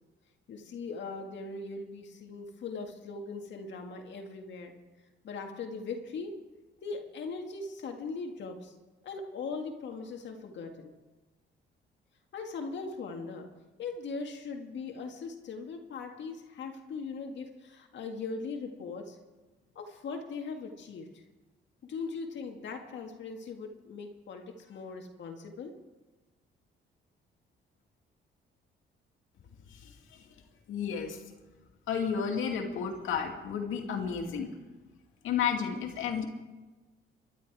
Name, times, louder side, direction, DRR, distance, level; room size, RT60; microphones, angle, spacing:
voice 1, 0.5-4.8 5.2-6.4 6.8-8.7 9.0-10.9 12.3-13.5 13.8-19.2 19.8-21.2 21.8-25.7, left 4 dB, 65° left, 3 dB, 1.8 m, -40 dB
voice 2, 29.7-30.2 30.7-31.2 31.9-34.5 35.2-36.3, left 7 dB, 85° left, 3 dB, 2.4 m, -32 dB
23.0 x 11.5 x 4.8 m, 1.2 s
cardioid pair, 90°, 20 cm